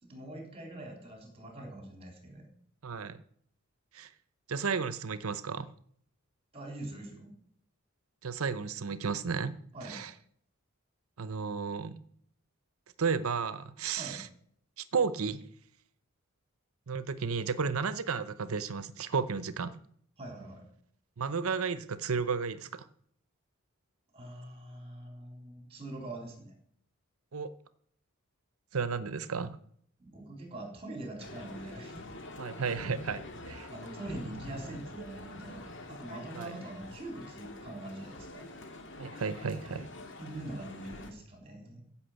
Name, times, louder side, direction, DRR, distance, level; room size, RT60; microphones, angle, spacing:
voice 1, 0.0-2.4 6.5-7.3 9.7-10.0 14.0-14.2 20.2-20.6 24.1-26.5 30.0-32.0 33.7-38.4 40.2-41.8, right 1 dB, 30° right, 1 dB, 3.9 m, -43 dB
voice 2, 2.8-3.2 3.9-4.1 4.5-5.7 8.2-9.5 9.8-10.1 11.2-12.0 13.0-14.3 14.8-15.4 16.9-19.7 21.2-22.9 27.3-27.5 28.7-29.6 32.4-33.7 36.3-36.5 39.0-39.9, right 5 dB, 80° right, 15 dB, 0.7 m, -33 dB
Male speech man speaking, 31.2-41.1, left 2 dB, 60° left, 1.9 m, -46 dB
15.0 x 5.9 x 8.0 m, 0.65 s
head